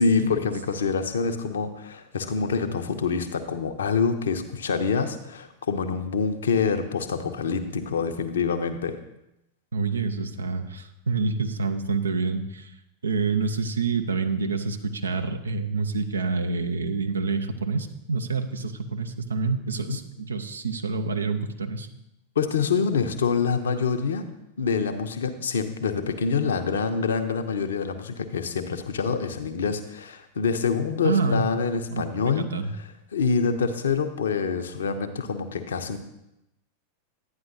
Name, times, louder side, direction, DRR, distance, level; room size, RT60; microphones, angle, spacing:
voice 1, 0.0-9.0 22.4-24.2 24.6-32.5 32.8-36.0, left 5 dB, 65° left, 7 dB, 0.7 m, -26 dB
voice 2, 9.7-12.7 13.0-21.9 31.0-31.5 31.9-32.7, right 4 dB, 75° right, 8 dB, 0.6 m, -27 dB
11.5 x 9.3 x 2.7 m, 0.88 s
figure-of-eight pair, 90°, 0 cm